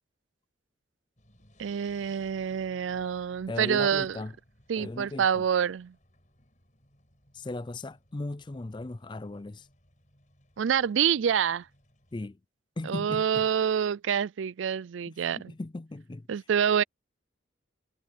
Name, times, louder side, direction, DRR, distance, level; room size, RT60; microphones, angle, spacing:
sound 1, 1.2-12.3, left 1 dB, 40° left, 7.7 m, -62 dB
voice 1, 1.6-4.2 4.7-5.9 10.6-11.7 12.9-15.5 16.3-16.8, right 8 dB, 85° right, 0.4 m, -27 dB
voice 2, 3.5-4.3 4.8-5.4 7.3-9.7 12.1-12.4 12.8-13.5 15.1-16.3, left 2 dB, 25° left, 0.4 m, -37 dB
head